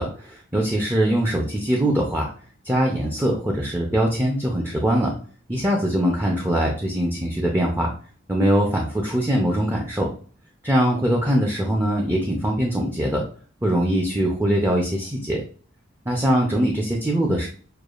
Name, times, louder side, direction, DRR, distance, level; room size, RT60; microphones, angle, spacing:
voice 1, 0.0-2.3 2.6-5.1 5.5-7.9 8.3-10.1 10.6-13.3 13.6-15.4 16.1-17.5, right 1 dB, 10° right, 0 dB, 0.6 m, -22 dB
6.6 x 2.3 x 2.4 m, 0.43 s
head